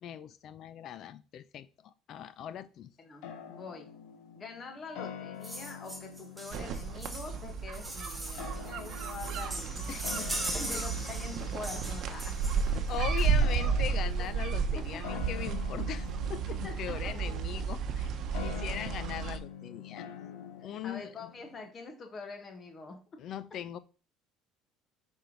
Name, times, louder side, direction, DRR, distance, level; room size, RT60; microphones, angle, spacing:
voice 1, 0.0-2.9 9.9-10.2 10.5-10.8 12.7-18.2 18.4-20.1 20.6-21.3 23.2-23.8, left 10 dB, 50° left, 15 dB, 0.5 m, -40 dB
voice 2, 3.0-3.9 4.3-12.9 14.7-15.3 16.5-17.2 20.6-23.2, left 4 dB, 30° left, 4 dB, 1.6 m, -45 dB
sound 1, 3.2-21.7, left 8 dB, 85° left, 1.2 m, -46 dB
sound 2, 5.4-13.8 14.8-14.9 15.3-15.4 15.6-15.7 16.1-16.7 17.2-17.3, right 1 dB, 5° right, 1.3 m, -41 dB
sound 3, 6.5-19.4, right 5 dB, 50° right, 0.9 m, -32 dB
5.3 x 4.5 x 5.4 m, 0.36 s
cardioid pair, 145°, 0 cm